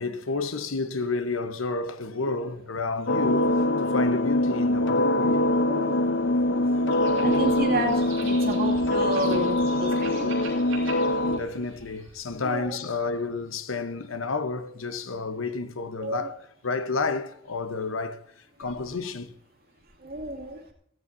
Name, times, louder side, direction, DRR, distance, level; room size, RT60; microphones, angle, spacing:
voice 1, 0.0-3.5 3.8-5.4 11.3-16.4 16.6-18.2 18.6-19.3, left 3 dB, 90° left, 1.0 m, -30 dB
sound 1, 3.1-11.4, left 1 dB, 60° left, 0.8 m, -23 dB
voice 2, 5.7-6.0 6.8-10.3 12.4-12.8 16.0-16.3 18.6-18.7 20.0-20.6, right 1 dB, 50° right, 2.4 m, -31 dB
sound 2, 6.9-12.4, right 4 dB, 80° right, 6.3 m, -44 dB
16.0 x 15.5 x 2.7 m
head